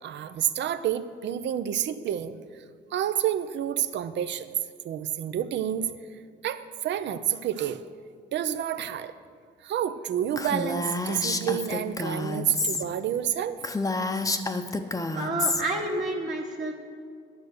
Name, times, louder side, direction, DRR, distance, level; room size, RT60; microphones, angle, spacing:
voice 1, 0.0-2.6 2.9-4.5 4.8-5.9 6.4-7.8 8.3-9.1 9.6-13.6, right 10 dB, 65° right, 12 dB, 0.6 m, -29 dB
Female speech woman speaking, 10.4-12.8 13.2-13.3 13.6-15.6, left 2 dB, 15° left, 0.7 m, -29 dB
voice 2, 15.1-16.7, right 2 dB, 40° right, -2 dB, 1.2 m, -29 dB
11.0 x 6.6 x 6.6 m, 2.1 s
cardioid pair, 90°, 20 cm